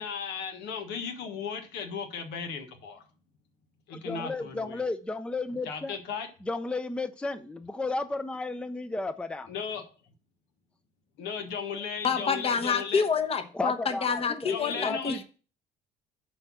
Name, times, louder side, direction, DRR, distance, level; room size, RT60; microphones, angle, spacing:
voice 1, 0.0-3.0 3.9-4.8 5.6-6.3 9.5-9.9 11.2-13.0 14.5-15.2, left 6 dB, 85° left, 1.3 m, -36 dB
voice 2, 3.9-5.9 6.5-9.5 13.5-15.2, left 3 dB, 5° left, 0.5 m, -33 dB
voice 3, 12.0-15.2, left 6 dB, 35° left, 1.1 m, -27 dB
7.7 x 4.5 x 6.1 m
cardioid pair, 110°, 17 cm